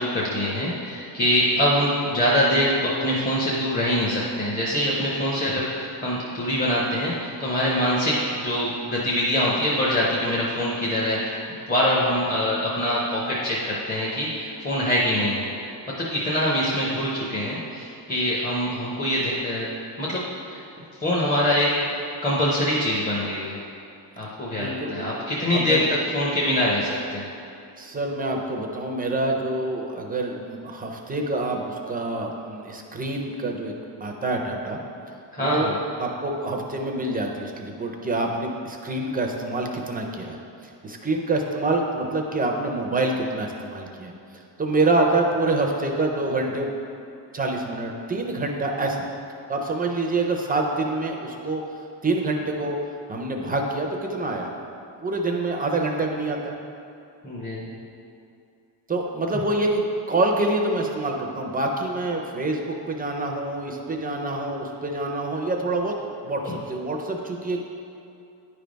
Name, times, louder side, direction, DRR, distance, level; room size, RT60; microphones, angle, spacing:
voice 1, 0.0-11.4 11.7-15.5 16.0-19.7 20.0-20.2 20.5-20.6 21.0-21.9 22.2-23.6 24.2-27.2 35.3-35.7 57.2-57.7, equal, 20° left, -6 dB, 0.7 m, -24 dB
voice 2, 24.5-25.2 25.5-25.9 27.8-33.7 34.0-34.8 35.4-40.4 40.8-44.1 44.6-46.7 47.3-49.1 49.5-51.6 52.0-52.8 53.1-54.5 55.0-56.6 58.9-59.8 60.1-67.6, right 2 dB, 20° right, 1 dB, 0.4 m, -26 dB
9.7 x 3.4 x 5.1 m, 2.6 s
cardioid pair, 160°, 45 cm